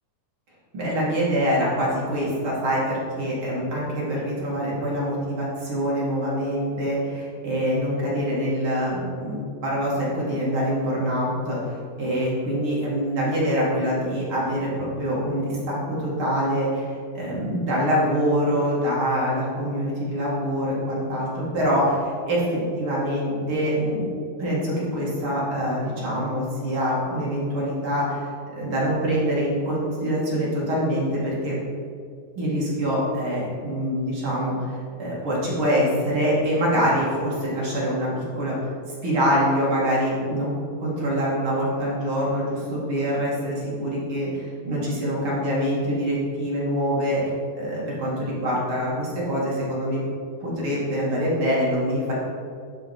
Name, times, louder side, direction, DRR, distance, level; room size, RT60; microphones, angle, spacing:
voice 1, 0.7-16.9 17.1-24.0 24.4-28.3 28.6-31.5 32.4-38.1 38.4-38.7 39.0-40.5 40.8-47.2 47.5-50.0 50.4-52.1, equal, 40° right, -6 dB, 2.4 m, -25 dB
11.5 x 4.9 x 4.4 m, 2.3 s
omnidirectional pair, 4.3 m